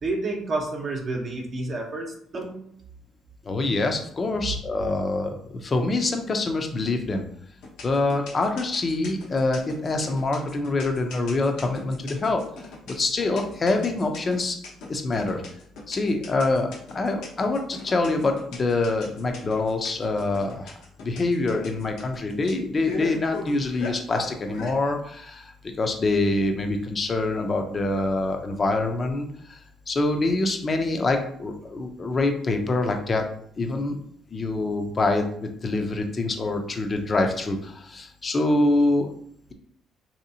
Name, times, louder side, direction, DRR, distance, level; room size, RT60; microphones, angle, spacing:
voice 1, 0.0-2.6 4.4-4.5, right 3 dB, 45° right, 0 dB, 0.7 m, -30 dB
voice 2, 3.5-7.2 7.8-12.4 12.9-14.6 14.9-15.4 15.9-20.7 21.0-29.6 29.9-33.2 33.6-34.0 34.3-39.1, left 2 dB, 35° left, 4 dB, 0.6 m, -25 dB
sound 1, 7.6-24.7, left 3 dB, 80° left, 0.9 m, -38 dB
3.2 x 2.8 x 2.7 m, 0.67 s
cardioid pair, 85°, 0 cm